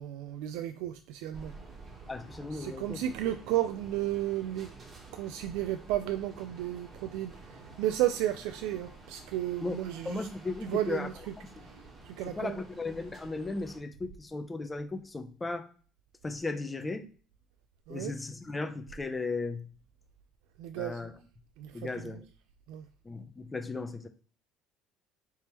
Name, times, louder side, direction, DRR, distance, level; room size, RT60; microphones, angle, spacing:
voice 1, 0.0-1.5 2.5-4.7 5.1-10.3 10.6-11.1 12.0-12.6 17.9-18.1 20.6-21.0 21.6-22.2 22.7-22.9, right 13 dB, 80° right, 0.3 m, -33 dB
sound 1, 1.3-13.8, right 3 dB, 35° right, 1.2 m, -50 dB
voice 2, 2.1-3.0 9.6-9.8 10.0-11.1 12.3-15.7 16.2-17.1 17.9-19.7 20.8-21.1 21.7-22.3 23.0-24.1, left 3 dB, 15° left, 0.5 m, -36 dB
4.4 x 3.4 x 3.0 m
cardioid pair, 135°, 0 cm